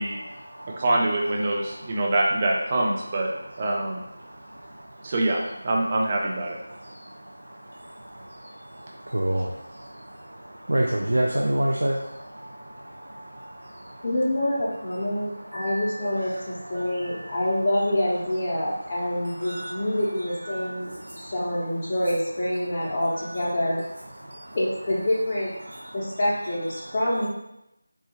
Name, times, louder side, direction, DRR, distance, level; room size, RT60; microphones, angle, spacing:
voice 1, 0.0-0.9 1.3-2.1 2.9-14.1 14.9-17.4 18.6-20.0 20.4-21.5 23.1-23.6 24.0-24.6 25.6-26.2 26.8-27.0, right 1 dB, 90° right, -1 dB, 0.4 m, -33 dB
voice 2, 0.8-3.3 3.6-4.0 5.0-6.6, right 2 dB, 25° right, -1 dB, 0.4 m, -24 dB
voice 3, 14.0-23.9 24.5-25.5 25.9-27.3, left 1 dB, 25° left, -9 dB, 0.6 m, -26 dB
4.1 x 2.3 x 2.9 m, 0.87 s
figure-of-eight pair, 170°, 0 cm